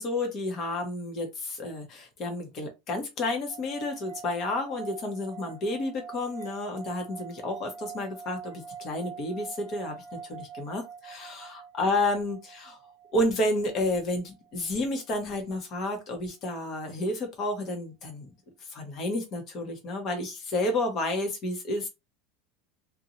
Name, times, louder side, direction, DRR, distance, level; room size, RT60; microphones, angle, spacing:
voice 1, 0.0-8.5 8.8-10.0 10.3-12.8 13.1-18.3 18.7-21.9, left 2 dB, 30° left, 0.8 m, -31 dB
sound 1, 3.5-14.8, right 6 dB, 90° left, 1.1 m, -45 dB
2.5 x 2.2 x 2.9 m
supercardioid pair, 180°, 0 cm